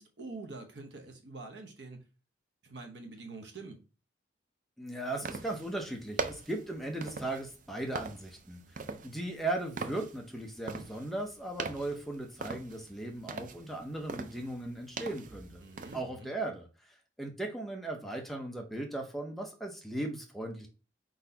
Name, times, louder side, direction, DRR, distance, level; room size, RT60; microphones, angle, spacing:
voice 1, 0.0-2.0 2.6-3.8 15.6-16.3, right 3 dB, 70° right, 1.0 m, -46 dB
voice 2, 4.8-15.6 15.9-20.7, right 2 dB, ahead, 0.7 m, -37 dB
sound 1, 5.2-16.0, right 4 dB, 45° right, 0.4 m, -42 dB
4.6 x 4.0 x 2.8 m
head